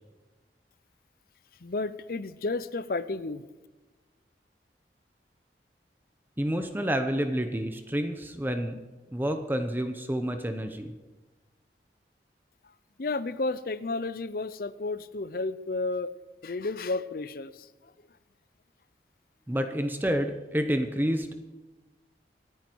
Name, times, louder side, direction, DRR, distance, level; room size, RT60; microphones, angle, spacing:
voice 1, 1.6-3.4 13.0-16.1 16.4-17.7, left 3 dB, 55° left, 15 dB, 0.6 m, -32 dB
voice 2, 6.4-8.7 9.1-10.9 19.5-21.4, equal, 10° right, 6 dB, 0.8 m, -29 dB
26.0 x 9.4 x 4.6 m, 1.2 s
head